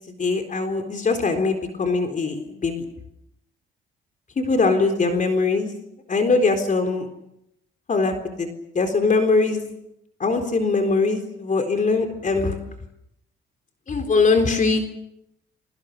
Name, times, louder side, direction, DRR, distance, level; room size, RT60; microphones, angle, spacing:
voice 1, 0.2-2.9 4.4-5.7 6.1-7.1 7.9-8.5 8.7-9.7 10.2-12.5 13.9-14.8, left 3 dB, 40° left, 6 dB, 4.0 m, -21 dB
29.0 x 24.5 x 6.8 m, 0.80 s
cardioid pair, 90°, 20 cm